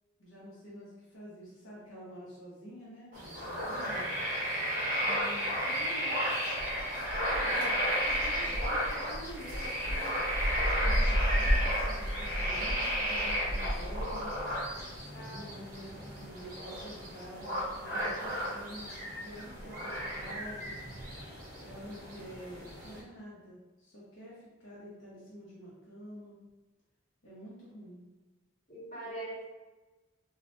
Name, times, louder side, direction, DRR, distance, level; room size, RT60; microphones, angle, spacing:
voice 1, 0.2-4.1 5.0-6.1 7.4-10.2 10.8-14.4 15.3-20.8 21.6-26.4 27.2-28.0, equal, 75° left, -8 dB, 1.0 m, -48 dB
sound 1, 3.1-23.0, equal, 45° right, 0.9 m, -32 dB
voice 2, 7.3-7.8 15.1-15.4 15.9-16.1 28.7-29.4, right 1 dB, 35° left, -9 dB, 1.3 m, -43 dB
3.3 x 2.5 x 2.5 m, 1.2 s
head